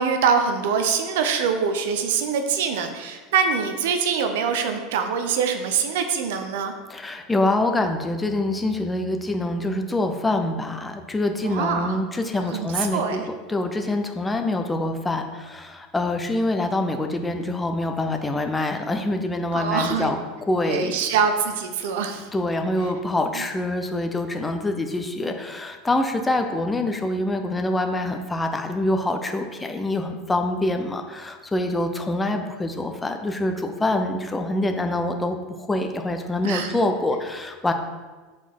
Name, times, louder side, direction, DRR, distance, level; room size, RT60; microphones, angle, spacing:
voice 1, 0.0-6.7 11.4-12.0 12.4-13.3 19.5-20.1 20.7-22.3 23.3-23.5 36.4-36.8, right 6 dB, 60° right, 6 dB, 0.6 m, -24 dB
voice 2, 6.9-13.2 13.5-20.2 20.5-20.9 22.3-37.7, left 2 dB, 15° left, 5 dB, 0.7 m, -25 dB
6.9 x 4.3 x 4.4 m, 1.3 s
figure-of-eight pair, 75°, 0 cm